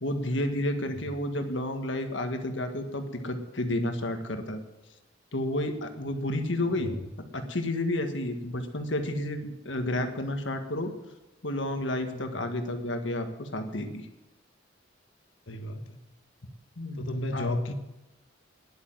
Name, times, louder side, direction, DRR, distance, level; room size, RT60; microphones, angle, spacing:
voice 1, 0.0-4.6 5.3-6.9 7.3-10.9 11.4-14.1 16.8-17.6, left 1 dB, 70° left, 6 dB, 1.7 m, -31 dB
voice 2, 6.6-7.0 12.1-12.3 15.5-16.0 16.9-17.7, left 1 dB, 85° left, 7 dB, 1.4 m, -33 dB
10.5 x 8.7 x 9.2 m, 1.0 s
head